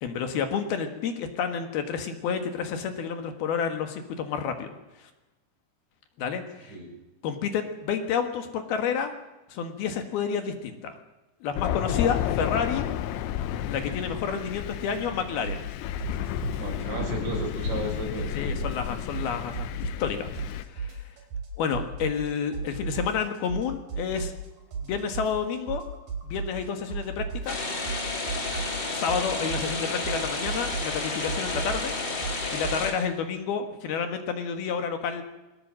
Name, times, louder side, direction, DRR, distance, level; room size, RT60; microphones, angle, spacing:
voice 1, 0.0-4.8 6.2-6.8 7.2-9.1 9.5-10.9 11.4-12.8 13.6-15.6 18.3-20.3 20.5-21.0 21.6-24.3 24.8-25.8 26.2-27.6 28.9-32.0 32.5-35.2, left 6 dB, 65° left, 6 dB, 3.3 m, -30 dB
Thunder, 11.6-20.6, left 11 dB, 90° left, 3.3 m, -32 dB
sound 1, 15.4-15.7 16.0-17.9 18.2-20.1 20.3-22.3 22.5-26.6 26.9-32.8, right 5 dB, 50° right, 4.7 m, -35 dB
voice 2, 16.6-18.4, right 2 dB, 80° right, 1 dB, 7.8 m, -34 dB
sound 2, 27.5-32.9, left 3 dB, 25° left, 3.2 m, -31 dB
22.5 x 18.5 x 7.7 m, 1.1 s
omnidirectional pair, 5.1 m